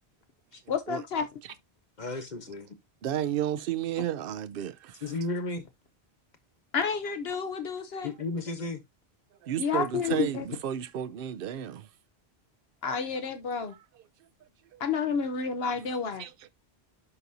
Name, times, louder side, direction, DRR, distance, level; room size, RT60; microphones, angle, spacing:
voice 1, 0.7-1.3 6.7-8.1 9.6-10.4 12.8-13.7 14.8-16.3, left 6 dB, 70° left, 1.1 m, -30 dB
voice 2, 2.0-2.8 5.0-5.7 8.0-8.8, left 2 dB, 45° left, 1.3 m, -34 dB
voice 3, 3.0-5.0 8.0-8.1 9.4-11.9 13.7-14.0 14.7-14.8 16.2-16.5, right 11 dB, 65° right, 0.8 m, -33 dB
11.0 x 4.1 x 2.7 m
omnidirectional pair, 1.1 m